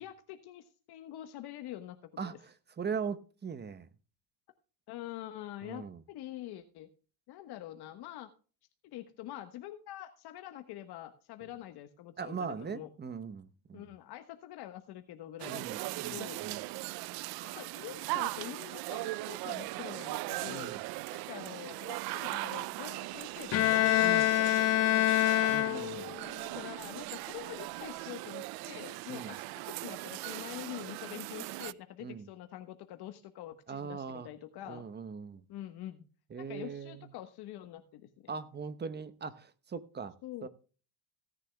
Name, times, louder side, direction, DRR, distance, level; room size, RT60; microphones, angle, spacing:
voice 1, 0.0-2.4 4.9-6.9 7.3-8.3 8.8-12.9 13.7-16.4 17.5-20.7 21.1-25.6 26.4-34.9 35.5-36.1 36.4-38.4 40.2-40.5, left 13 dB, 50° left, 1.3 m, -45 dB
voice 2, 2.2-3.9 5.6-6.0 12.2-13.9 15.5-16.6 20.5-20.8 24.0-24.3 25.5-26.1 29.1-29.3 32.0-32.3 33.7-34.3 34.7-35.4 36.3-37.1 38.3-40.1 40.4-40.5, right 6 dB, 20° right, 0.9 m, -40 dB
sound 1, 15.4-31.7, right 20 dB, 50° right, 0.5 m, -39 dB
Bowed string instrument, 23.5-26.2, left 14 dB, 35° left, 0.5 m, -26 dB
17.0 x 10.5 x 2.2 m
supercardioid pair, 100°, 48 cm